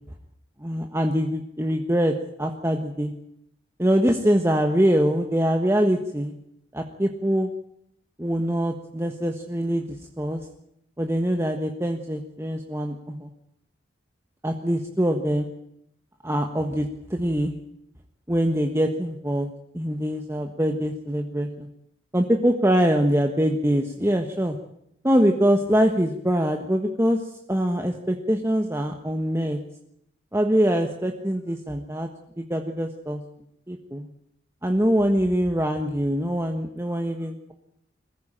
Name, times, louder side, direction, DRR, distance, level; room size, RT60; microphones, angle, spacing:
voice 1, 0.6-3.1 3.8-6.3 6.7-7.5 8.2-10.4 11.0-13.3 14.4-15.5 16.2-17.5 18.3-19.5 19.7-21.7 22.1-24.6 25.0-29.6 30.3-32.1 32.4-33.2 33.7-34.1 34.6-37.5, equal, 15° right, 4 dB, 1.4 m, -23 dB
22.5 x 15.5 x 8.9 m, 0.76 s
head